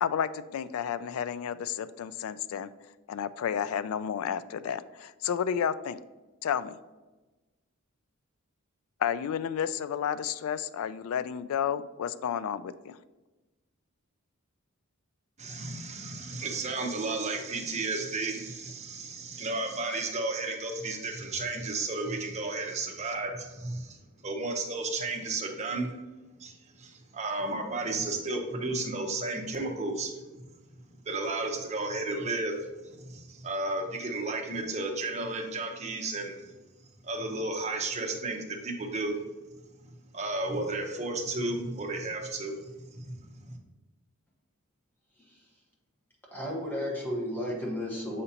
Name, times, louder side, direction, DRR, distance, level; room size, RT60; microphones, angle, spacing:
voice 1, 0.0-2.7 3.1-6.0 6.4-6.8 9.0-13.0, left 8 dB, 70° left, 14 dB, 0.3 m, -31 dB
voice 2, 15.4-25.9 26.4-30.4 31.1-32.6 32.9-36.5 37.0-39.2 40.1-43.2 43.5-43.6, right 2 dB, 30° right, 2 dB, 0.8 m, -33 dB
voice 3, 45.2-45.6 46.3-48.2, equal, 10° left, -3 dB, 1.3 m, -34 dB
6.9 x 5.0 x 2.8 m, 1.2 s
head